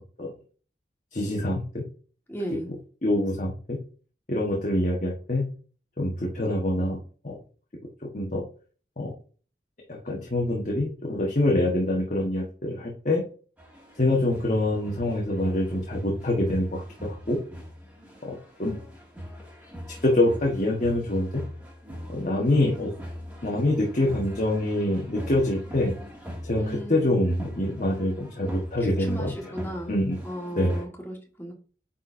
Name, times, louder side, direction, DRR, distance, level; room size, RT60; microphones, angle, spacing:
voice 1, 1.1-1.8 2.5-2.6 3.0-3.8 4.3-5.4 6.0-7.0 7.2-7.4 8.1-8.4 9.0-9.1 9.9-13.2 14.0-17.4 18.2-18.3 18.6-18.8 20.0-21.4 22.1-22.9 23.4-25.9 26.4-29.5 29.9-30.2 30.6-30.8, left 1 dB, 45° left, -1 dB, 1.4 m, -25 dB
voice 2, 2.3-2.7 26.6-27.1 28.8-29.9 30.2-31.5, equal, 15° left, 1 dB, 1.6 m, -35 dB
sound 1, 13.6-30.9, equal, 10° right, 2.2 m, -42 dB
9.2 x 4.3 x 2.6 m, 0.39 s
head